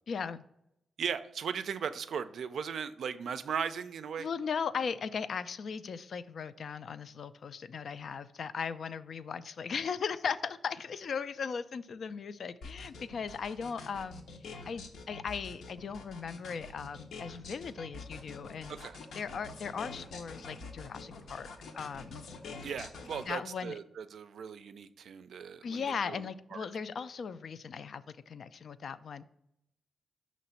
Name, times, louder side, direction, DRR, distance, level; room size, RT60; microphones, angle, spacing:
voice 1, 0.1-0.4 4.2-18.8 19.1-22.2 23.3-23.7 25.6-29.2, left 6 dB, 60° left, 14 dB, 0.3 m, -38 dB
voice 2, 1.0-4.3 18.7-19.0 22.6-26.6, right 7 dB, 75° right, 11 dB, 0.4 m, -38 dB
sound 1, 12.6-23.3, left 3 dB, 85° left, 0.7 m, -46 dB
5.8 x 3.0 x 5.5 m, 0.81 s
cardioid pair, 100°, 0 cm